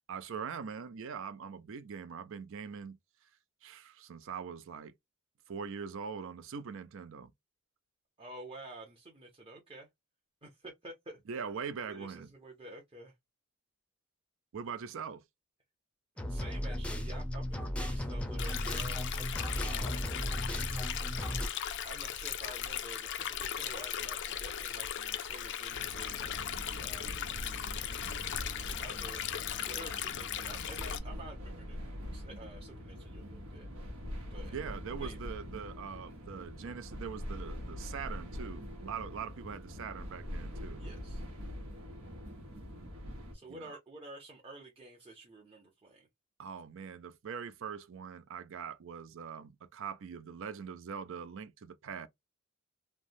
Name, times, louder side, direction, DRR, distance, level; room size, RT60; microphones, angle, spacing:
voice 1, 0.1-3.0 3.6-4.9 5.5-7.3 11.3-12.3 14.5-15.2 34.4-40.8 43.5-43.8 46.4-52.1, right 6 dB, 65° right, 0.4 m, -42 dB
voice 2, 8.2-9.9 10.4-11.2 11.9-13.1 16.3-19.1 19.7-20.2 21.8-27.3 28.8-29.3 29.7-31.8 32.1-33.7 34.3-34.5 35.0-35.2 36.0-36.4 40.8-41.2 43.3-46.1, right 1 dB, 25° right, 0.7 m, -50 dB
sound 1, 16.2-21.5, equal, 5° left, 0.5 m, -35 dB
Stream, 18.4-31.0, left 9 dB, 55° left, 0.4 m, -38 dB
sound 2, 25.7-43.3, equal, 90° right, 1.1 m, -43 dB
3.2 x 2.1 x 2.5 m
head